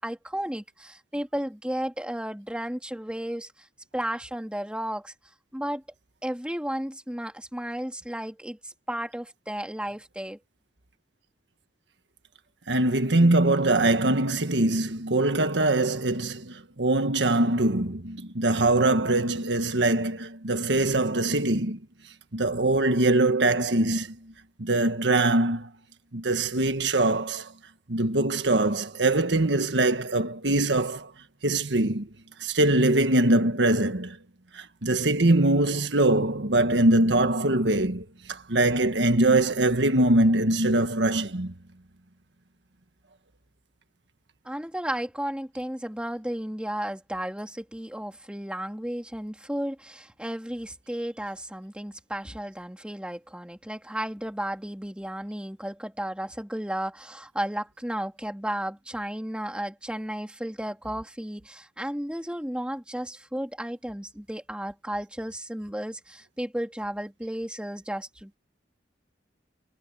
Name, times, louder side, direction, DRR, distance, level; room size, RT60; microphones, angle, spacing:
voice 1, 0.0-3.7 3.9-5.1 5.5-5.8 6.2-10.4 44.4-68.4, right 1 dB, 5° right, 2.8 m, -33 dB
voice 2, 12.7-21.8 22.3-24.2 24.6-25.7 26.1-27.5 27.9-31.1 31.4-32.1 32.4-34.2 34.5-41.5, right 2 dB, 80° right, 1.5 m, -23 dB
head